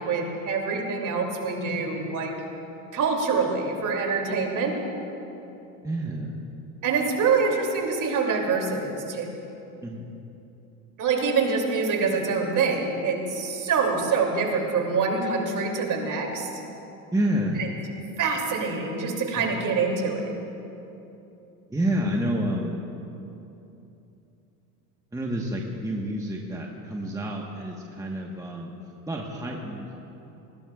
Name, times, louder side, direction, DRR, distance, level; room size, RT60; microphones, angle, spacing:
voice 1, 0.0-2.3 2.9-4.7 6.8-9.3 11.0-16.5 17.6-17.7 18.2-20.3, right 4 dB, 45° right, 1 dB, 3.0 m, -25 dB
voice 2, 5.8-6.4 9.8-10.1 17.1-17.7 19.4-19.5 21.7-22.8 25.1-28.7 29.1-30.0, right 1 dB, 5° right, -1 dB, 1.3 m, -29 dB
19.5 x 18.5 x 2.5 m, 2.9 s
hypercardioid pair, 80°, 45 cm